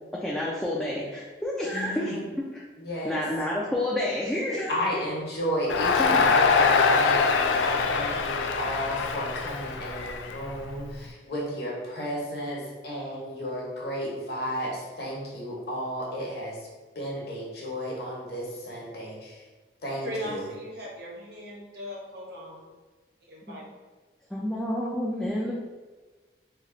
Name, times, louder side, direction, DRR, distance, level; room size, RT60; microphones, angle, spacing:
voice 1, 0.1-2.2 2.5-2.6 3.0-5.0 6.0-6.3 23.4-23.6 24.3-25.5, left 1 dB, 5° left, -5 dB, 0.3 m, -29 dB
voice 2, 1.7-2.2 2.8-3.2 4.7-16.6 16.9-19.4 19.8-20.4, equal, 55° left, -4 dB, 1.0 m, -33 dB
Crowd, 5.7-10.9, left 5 dB, 85° left, 0.3 m, -23 dB
voice 3, 20.0-22.7 23.3-23.6, equal, 55° right, -4 dB, 0.9 m, -38 dB
3.2 x 2.3 x 3.7 m, 1.3 s
head